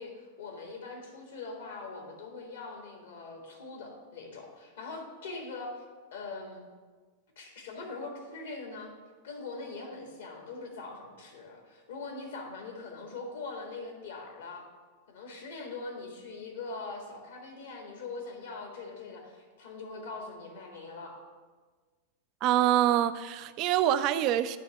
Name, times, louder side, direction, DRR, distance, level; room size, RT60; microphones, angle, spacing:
voice 1, 0.0-5.8 6.1-6.6 7.3-8.9 9.2-14.6 15.1-21.2, left 3 dB, 60° left, 1.5 m, -42 dB
voice 2, 22.4-24.6, right 12 dB, 40° right, 0.3 m, -25 dB
9.3 x 3.5 x 6.0 m
figure-of-eight pair, 90°, 0 cm